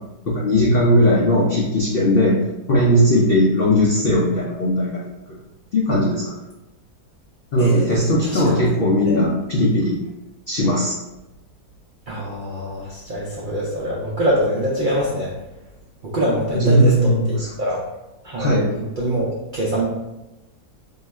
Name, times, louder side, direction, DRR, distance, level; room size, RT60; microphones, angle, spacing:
voice 1, 0.3-5.0 5.7-6.3 7.5-10.0 10.5-11.0 16.5-17.5 18.4-18.7, equal, 80° left, -5 dB, 0.5 m, -18 dB
voice 2, 7.6-8.6 9.0-9.3 12.1-15.3 16.0-17.8 18.2-19.8, equal, 90° right, -5 dB, 0.4 m, -24 dB
2.7 x 2.3 x 4.1 m, 0.99 s
omnidirectional pair, 1.7 m